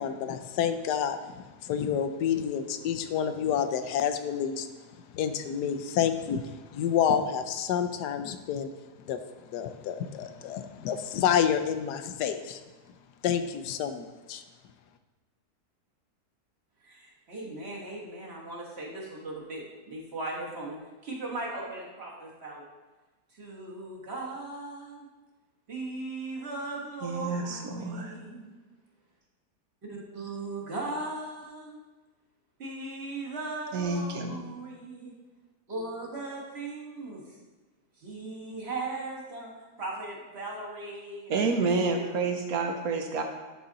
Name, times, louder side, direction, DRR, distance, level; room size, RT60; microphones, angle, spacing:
voice 1, 0.0-4.7 5.1-8.7 9.1-9.2 9.5-12.6 13.2-14.4, left 8 dB, 80° left, 9 dB, 1.2 m, -29 dB
voice 2, 16.8-20.8 21.0-22.6 23.3-25.1 25.7-28.5 29.8-31.8 32.6-35.1 35.7-37.4 38.0-39.5 39.8-42.2, right 2 dB, 40° right, -3 dB, 1.6 m, -38 dB
voice 3, 27.0-28.1 33.7-34.4 41.3-43.2, right 4 dB, 65° right, 4 dB, 1.1 m, -29 dB
11.0 x 4.1 x 3.9 m, 1.3 s
omnidirectional pair, 1.7 m